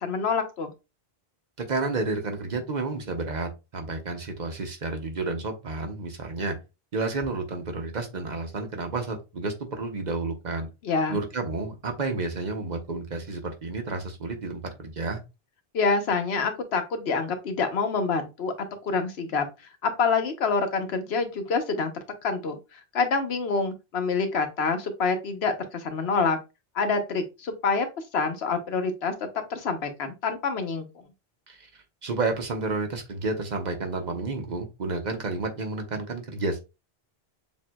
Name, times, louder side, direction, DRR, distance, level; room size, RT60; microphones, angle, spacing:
voice 1, 0.0-0.7 10.8-11.2 15.7-18.5 18.8-19.4 19.8-21.9 22.2-26.4 26.7-27.9 28.1-29.1 29.5-30.9, left 4 dB, 85° left, 7 dB, 1.1 m, -26 dB
voice 2, 1.6-6.6 6.9-10.7 11.1-15.2 31.5-31.7 32.0-36.6, right 3 dB, 50° right, 5 dB, 0.8 m, -31 dB
7.1 x 2.6 x 2.2 m, 0.27 s
omnidirectional pair, 1.0 m